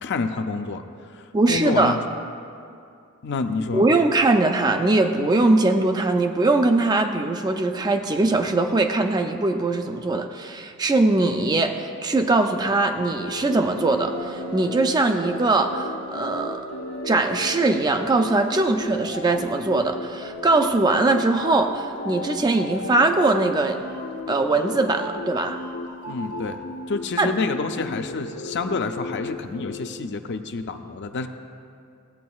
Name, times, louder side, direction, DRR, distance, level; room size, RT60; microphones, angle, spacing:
voice 1, 0.0-2.0 3.2-3.9 26.1-26.6 26.9-31.3, left 4 dB, 50° left, 7 dB, 0.5 m, -28 dB
voice 2, 1.3-2.0 3.7-16.6 17.0-23.8 24.3-25.6 27.2-27.3, right 2 dB, 20° right, 5 dB, 0.4 m, -21 dB
sound 1, 13.0-29.9, left 2 dB, 85° left, 0.8 m, -35 dB
Wind instrument woodwind instrument, 13.5-18.2, right 1 dB, 40° right, 0.7 m, -42 dB
16.0 x 8.2 x 2.3 m, 2.4 s
head